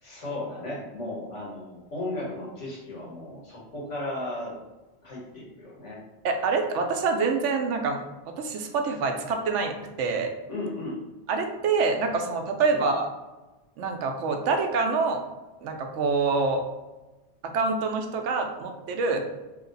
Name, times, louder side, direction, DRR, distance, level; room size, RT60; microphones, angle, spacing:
voice 1, 0.0-4.5 5.0-6.0 10.5-11.0 12.7-12.8 19.1-19.2, left 2 dB, 85° left, -5 dB, 1.7 m, -35 dB
voice 2, 6.2-10.3 11.3-13.1 13.8-15.2 15.6-16.6 17.4-19.2, right 4 dB, 85° right, 4 dB, 0.9 m, -26 dB
3.1 x 2.9 x 3.9 m, 1.1 s
omnidirectional pair, 1.2 m